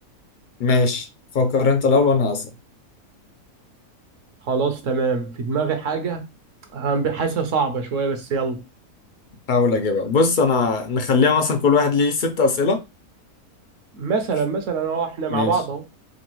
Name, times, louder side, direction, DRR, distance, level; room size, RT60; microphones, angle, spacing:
voice 1, 0.6-1.1 1.3-2.5 9.5-12.8 15.3-15.6, left 4 dB, 80° left, 0.4 m, -19 dB
voice 2, 4.5-6.2 6.7-8.6 14.0-15.8, right 5 dB, 65° right, 1.0 m, -24 dB
5.0 x 2.2 x 3.0 m
omnidirectional pair, 1.6 m